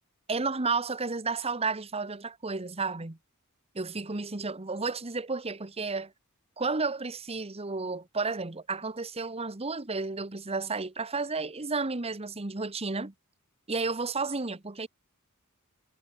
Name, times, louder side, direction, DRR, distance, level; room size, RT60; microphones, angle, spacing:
voice 1, 0.3-3.2 3.7-6.1 6.6-13.1 13.7-14.9, right 4 dB, 30° right, 1.2 m, -32 dB
head